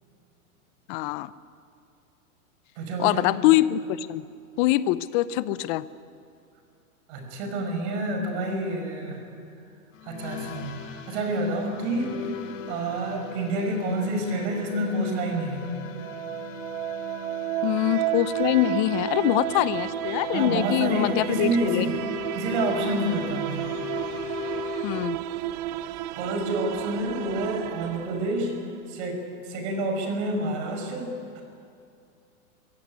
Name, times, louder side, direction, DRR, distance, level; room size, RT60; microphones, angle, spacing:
voice 1, 0.9-1.3 3.0-4.3 4.6-5.9 17.6-21.9 24.8-25.2, left 15 dB, 35° left, 17 dB, 0.7 m, -24 dB
voice 2, 2.8-3.3 7.1-9.2 10.0-12.3 12.7-15.7 20.3-22.0 22.3-23.7 26.2-28.5 28.9-31.4, right 1 dB, 50° right, 4 dB, 5.8 m, -28 dB
sound 1, 9.9-25.0, left 5 dB, 60° left, 2.4 m, -39 dB
sound 2, 15.8-28.8, right 12 dB, 30° right, 0.5 m, -32 dB
22.5 x 16.0 x 9.8 m, 2.5 s
hypercardioid pair, 140°, 43 cm